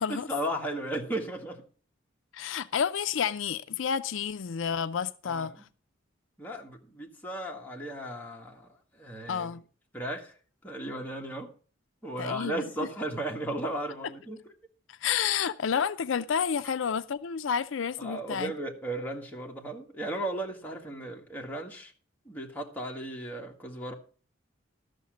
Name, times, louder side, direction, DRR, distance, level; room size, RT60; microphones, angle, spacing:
voice 1, 0.1-1.6 5.2-5.5 6.4-8.7 8.9-9.5 9.9-10.3 10.6-11.5 12.0-14.4 18.0-21.9 22.2-23.9, right 1 dB, 10° left, 1.7 m, -35 dB
voice 2, 2.3-5.5 9.3-9.6 12.2-12.9 14.9-18.5, left 7 dB, 75° left, 0.4 m, -30 dB
12.5 x 6.5 x 6.1 m
head